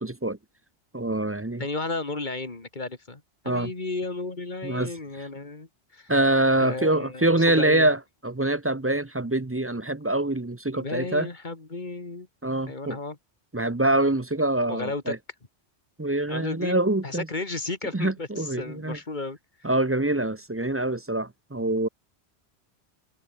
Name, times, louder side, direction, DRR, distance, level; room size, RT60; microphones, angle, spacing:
voice 1, 0.0-0.4 0.9-1.6 3.4-3.7 4.6-4.9 6.1-11.3 12.4-13.0 13.5-15.2 16.0-17.3 17.9-19.0 19.6-21.9, right 1 dB, 15° right, 0.6 m, -25 dB
voice 2, 1.6-6.1 6.6-7.9 10.7-12.3 12.7-13.2 14.7-15.1 16.3-16.8 17.0-19.4, left 3 dB, 40° left, 2.6 m, -33 dB
omnidirectional pair, 1.2 m